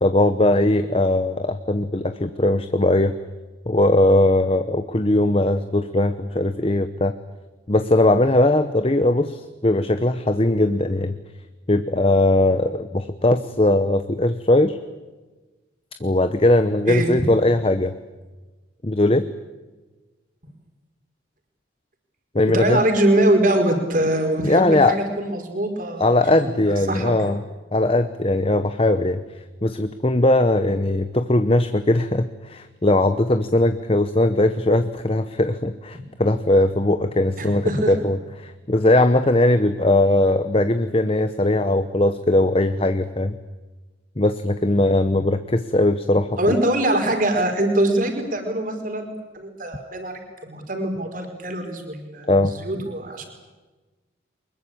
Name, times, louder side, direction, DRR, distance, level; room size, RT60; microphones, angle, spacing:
voice 1, 0.0-3.1 3.7-7.1 7.7-11.2 11.7-14.8 16.0-17.9 18.8-19.3 22.3-22.8 24.4-25.0 26.0-27.4 27.7-29.2 29.6-43.3 44.2-46.4 52.3-52.5, left 1 dB, 30° left, 10 dB, 0.9 m, -19 dB
voice 2, 22.5-26.1 26.3-26.6 26.9-27.1 37.4-37.9 46.4-52.3 52.6-53.3, right 1 dB, 45° right, 4 dB, 4.8 m, -23 dB
24.0 x 21.5 x 8.7 m, 1.2 s
head